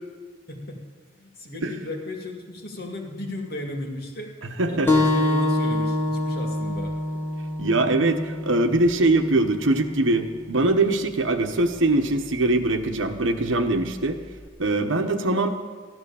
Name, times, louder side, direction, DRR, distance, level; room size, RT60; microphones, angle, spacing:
voice 1, 1.1-4.3 4.7-7.0, left 1 dB, 55° left, 2 dB, 2.2 m, -35 dB
voice 2, 4.6-4.9 7.6-14.2 14.6-15.5, right 2 dB, 90° right, 6 dB, 1.2 m, -22 dB
sound 1, 4.9-10.0, left 1 dB, 10° left, 1.3 m, -25 dB
15.0 x 11.0 x 7.0 m, 1.5 s
head